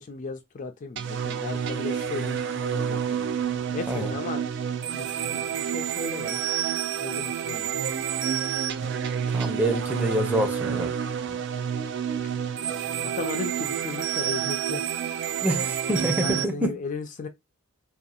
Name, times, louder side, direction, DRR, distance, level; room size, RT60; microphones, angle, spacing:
voice 1, 0.0-3.3 3.7-4.4 4.9-6.4 7.0-7.7 13.0-14.8 16.2-17.3, left 4 dB, 40° left, 0.4 m, -35 dB
sound 1, 1.0-16.4, right 8 dB, 60° right, 0.4 m, -29 dB
voice 2, 9.3-10.9 11.3-11.4 15.4-16.7, right 1 dB, 10° right, 0.6 m, -26 dB
2.7 x 2.3 x 2.3 m
head